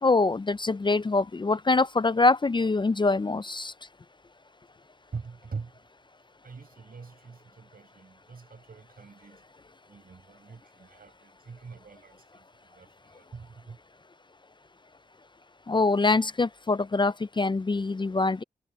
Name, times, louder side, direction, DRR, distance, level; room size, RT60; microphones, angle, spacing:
voice 1, 0.0-3.7 15.7-18.4, left 3 dB, 30° left, 0.4 m, -24 dB
voice 2, 5.1-5.7 6.4-9.4 9.9-12.4 12.7-13.8, right 5 dB, 70° right, 5.7 m, -43 dB
wide cardioid pair, 85°, 16 cm